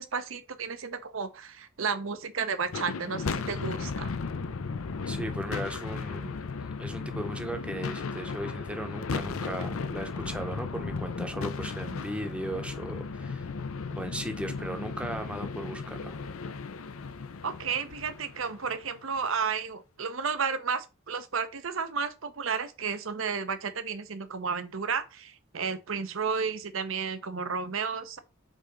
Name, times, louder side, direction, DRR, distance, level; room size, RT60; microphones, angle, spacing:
voice 1, 0.0-4.1 17.4-28.2, right 5 dB, 70° right, 0.8 m, -32 dB
sound 1, 2.6-19.0, left 4 dB, 90° left, 0.6 m, -35 dB
voice 2, 5.1-6.4 6.8-13.5 13.9-16.2, right 1 dB, 5° right, 0.8 m, -37 dB
5.1 x 3.8 x 5.2 m
head